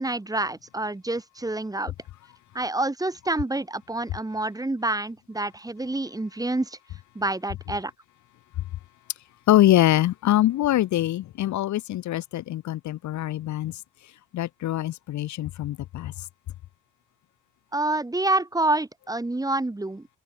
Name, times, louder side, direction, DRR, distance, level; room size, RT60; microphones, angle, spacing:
voice 1, 0.0-1.9 2.5-6.8 7.2-7.9 17.7-20.1, right 2 dB, 10° right, 1.8 m, -27 dB
voice 2, 9.5-13.8 14.3-16.1, left 14 dB, 70° left, 0.9 m, -23 dB
open air
cardioid pair, 90°, 30 cm